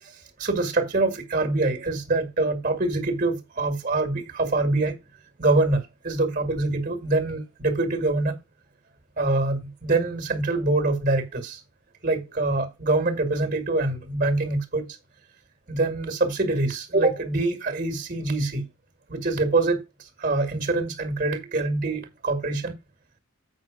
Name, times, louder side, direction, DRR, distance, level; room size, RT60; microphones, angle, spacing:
voice 1, 0.0-4.9 5.4-8.4 9.2-11.6 12.0-14.9 15.7-18.7 19.1-19.8 20.2-22.8, right 2 dB, 40° right, 1.9 m, -25 dB
7.8 x 6.1 x 5.0 m
head